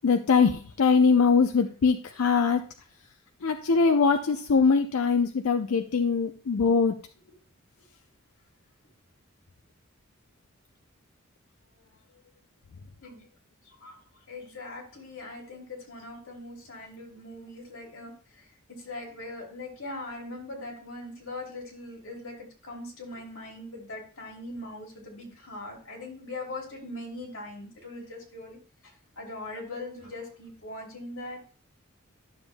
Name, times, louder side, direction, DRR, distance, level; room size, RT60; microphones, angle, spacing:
voice 1, 0.0-2.6 3.4-7.0, left 5 dB, 80° left, 0.5 m, -22 dB
voice 2, 2.1-2.4 4.0-4.2 7.3-7.4 13.0-13.2 13.8-14.0 14.3-31.4, left 2 dB, 65° left, 2.8 m, -41 dB
12.0 x 7.0 x 2.2 m
head